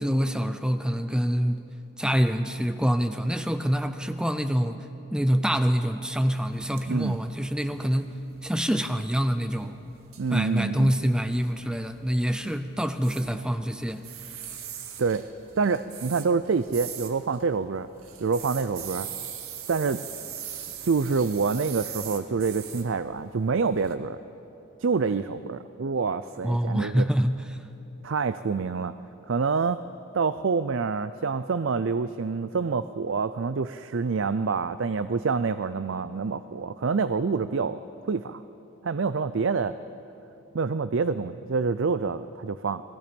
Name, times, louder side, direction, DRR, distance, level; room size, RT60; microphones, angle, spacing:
voice 1, 0.0-1.6 2.0-4.8 5.1-8.1 8.4-9.7 10.3-14.0 26.4-27.6, equal, 5° right, 9 dB, 0.5 m, -26 dB
sound 1, 6.4-23.9, right 9 dB, 80° right, 1.8 m, -42 dB
voice 2, 10.2-10.9 15.0-15.3 15.6-17.9 18.2-19.1 19.7-20.0 20.8-24.2 24.8-27.1 28.0-28.9 29.3-29.8 30.1-38.4 38.8-39.7 40.5-42.8, right 4 dB, 60° right, 13 dB, 0.5 m, -27 dB
29.5 x 20.5 x 5.3 m, 2.9 s
head